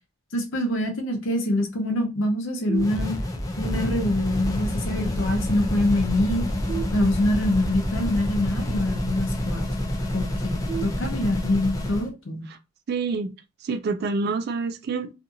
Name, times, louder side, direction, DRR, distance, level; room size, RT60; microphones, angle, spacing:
voice 1, 0.3-3.1 3.6-6.4 6.9-9.7 10.1-12.5, left 1 dB, 75° left, 0.7 m, -25 dB
sound 1, 2.7-12.1, left 1 dB, 15° left, 0.4 m, -28 dB
sound 2, 2.7-3.6 6.7-7.7 10.7-11.7, right 10 dB, 15° right, 0.9 m, -36 dB
voice 2, 12.9-13.3 13.6-15.1, right 4 dB, 55° right, 0.3 m, -27 dB
2.6 x 2.4 x 2.6 m
head